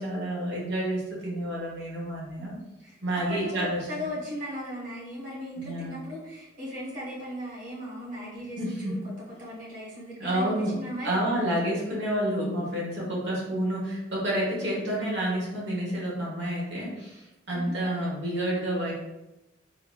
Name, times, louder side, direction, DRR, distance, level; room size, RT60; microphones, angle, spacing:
voice 1, 0.0-2.5 3.0-3.8 5.6-6.0 8.6-9.0 10.2-10.7 11.0-17.2 17.5-18.9, right 1 dB, 60° right, -4 dB, 1.2 m, -29 dB
voice 2, 2.4-3.5 3.9-9.0 9.4-11.5 14.7-14.9 17.5-17.7, equal, 45° right, -6 dB, 1.4 m, -37 dB
3.9 x 2.6 x 2.3 m, 0.94 s
head